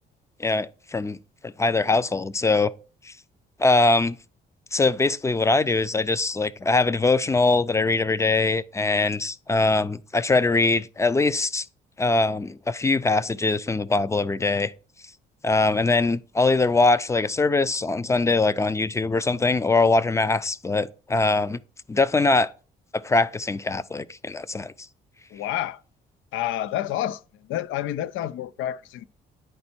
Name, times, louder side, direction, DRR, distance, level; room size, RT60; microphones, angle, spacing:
voice 1, 0.4-1.2 1.4-2.7 3.1-3.2 3.6-4.2 4.7-11.7 12.0-14.7 15.4-21.6 21.9-22.5 22.9-24.7, left 3 dB, 15° left, 0.4 m, -22 dB
voice 2, 25.3-25.8 26.3-29.1, left 12 dB, 85° left, 0.4 m, -29 dB
9.5 x 4.3 x 4.3 m
cardioid pair, 90°, 20 cm